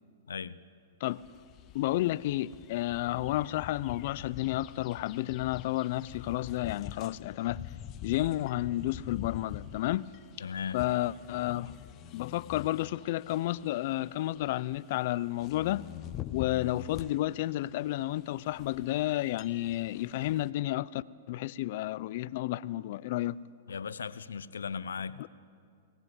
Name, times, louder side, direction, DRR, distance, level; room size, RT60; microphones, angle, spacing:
voice 1, 0.3-0.6 10.4-10.8 23.7-25.3, left 6 dB, 90° left, 0.8 m, -37 dB
sound 1, 1.1-20.5, left 12 dB, 35° left, 0.9 m, -46 dB
voice 2, 1.7-7.6 8.0-10.1 10.7-11.7 12.1-15.8 16.3-23.4 25.2-25.3, left 15 dB, 55° left, 0.6 m, -31 dB
24.5 x 18.5 x 8.3 m
hypercardioid pair, 130°, 0 cm